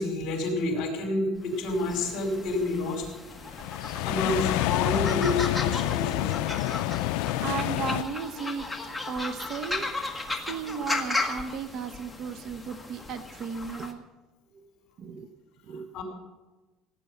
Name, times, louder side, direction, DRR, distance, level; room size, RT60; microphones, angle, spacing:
voice 1, 0.0-3.1 4.0-6.3 14.5-14.6 15.9-16.0, left 2 dB, 55° left, 2 dB, 5.1 m, -29 dB
sound 1, 1.5-13.9, left 2 dB, 5° left, 1.7 m, -36 dB
sound 2, 3.5-8.0, left 16 dB, 80° left, 0.4 m, -28 dB
voice 2, 7.4-8.7 9.1-10.1 10.4-14.0 15.0-15.3 15.7-15.9, right 6 dB, 50° right, 10 dB, 1.0 m, -35 dB
17.5 x 10.0 x 7.4 m, 1.2 s
cardioid pair, 145°, 0 cm